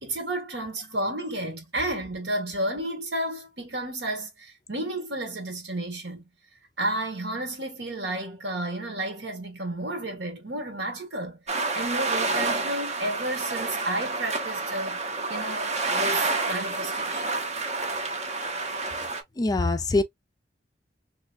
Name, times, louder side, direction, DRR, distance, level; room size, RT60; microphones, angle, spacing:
voice 1, 0.0-6.2 6.8-15.0 15.3-17.3, right 1 dB, 75° right, 1.4 m, -32 dB
sound 1, 11.5-19.2, right 3 dB, 40° right, 0.7 m, -29 dB
voice 2, 19.4-20.0, left 2 dB, 20° left, 0.4 m, -23 dB
3.3 x 3.1 x 2.5 m
head